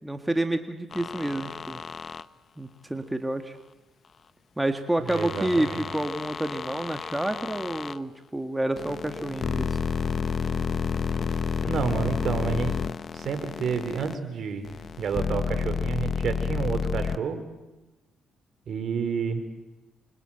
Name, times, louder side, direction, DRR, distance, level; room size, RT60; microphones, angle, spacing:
voice 1, 0.0-1.8 2.6-3.6 4.6-9.8, right 1 dB, 10° right, 6 dB, 1.8 m, -29 dB
sound 1, 0.9-2.2 5.1-8.0 8.8-14.1 14.6-17.2, left 6 dB, 45° left, 0.9 m, -30 dB
voice 2, 5.1-5.8 11.7-12.8 13.1-14.7 15.0-17.4 18.7-19.4, right 6 dB, 60° right, 9 dB, 4.3 m, -29 dB
27.5 x 24.0 x 9.1 m, 1.1 s
cardioid pair, 90°, 0 cm